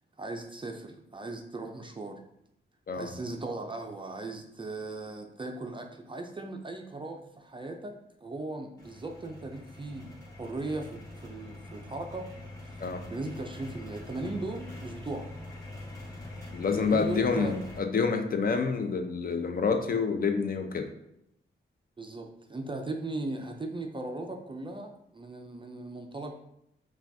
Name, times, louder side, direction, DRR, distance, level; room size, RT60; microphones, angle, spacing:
voice 1, 0.2-2.2 2.9-12.3 13.1-15.3 16.8-17.6 22.0-26.3, right 2 dB, 25° right, 3 dB, 0.4 m, -38 dB
sound 1, 8.8-17.8, left 2 dB, 15° left, 1.5 m, -44 dB
voice 2, 16.5-20.9, left 5 dB, 45° left, 6 dB, 0.5 m, -28 dB
5.7 x 2.3 x 2.6 m, 0.79 s
cardioid pair, 85°, 20 cm